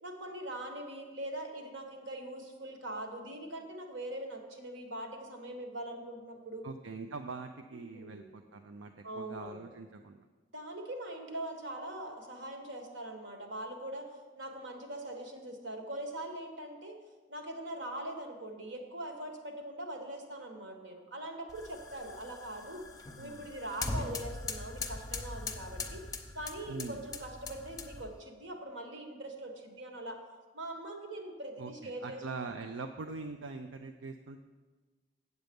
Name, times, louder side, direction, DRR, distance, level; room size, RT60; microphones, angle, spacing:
voice 1, 0.0-6.7 7.9-8.3 9.0-9.7 10.5-17.0 17.3-22.8 23.2-26.0 26.3-30.2 30.5-32.5, right 1 dB, 70° right, 3 dB, 1.4 m, -42 dB
voice 2, 6.6-10.3 23.2-23.5 26.7-27.0 31.6-34.4, right 4 dB, 85° right, 6 dB, 0.5 m, -43 dB
sound 1, 21.5-28.2, left 3 dB, 20° left, 0.7 m, -41 dB
8.1 x 7.8 x 5.2 m, 1.3 s
head